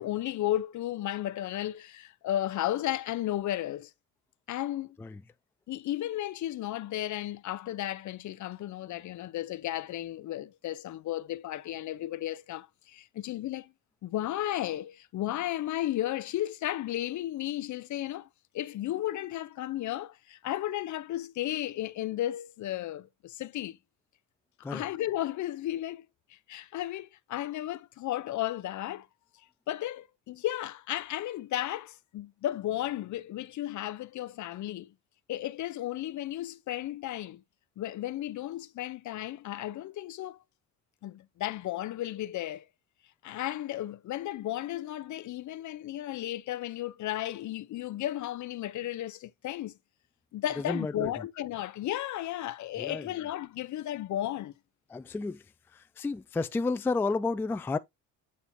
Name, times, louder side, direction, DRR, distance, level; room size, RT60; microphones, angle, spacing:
voice 1, 0.0-3.9 4.5-5.0 5.7-13.7 14.0-18.3 18.5-23.8 24.6-29.1 29.7-34.9 35.3-37.4 37.8-40.4 41.0-42.7 43.2-49.8 50.3-54.5, left 13 dB, 55° left, 0.6 m, -34 dB
voice 2, 50.6-51.3 52.8-53.1 54.9-55.4 55.7-57.8, left 3 dB, 5° left, 0.3 m, -31 dB
8.5 x 4.2 x 2.6 m
supercardioid pair, 75°, 36 cm